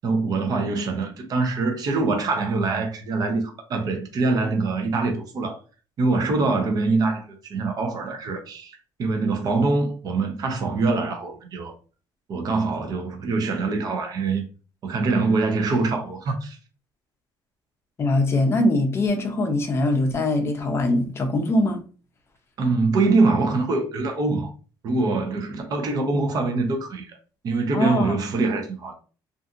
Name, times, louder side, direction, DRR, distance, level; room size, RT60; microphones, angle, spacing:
voice 1, 0.0-5.6 6.0-11.7 12.3-14.5 14.8-16.6 22.6-24.5 24.8-27.2 27.4-28.9, right 3 dB, 45° right, 0.7 m, -24 dB
voice 2, 18.0-21.8 27.7-28.1, left 2 dB, 30° left, 0.5 m, -22 dB
2.6 x 2.5 x 2.5 m
cardioid pair, 145°, 9 cm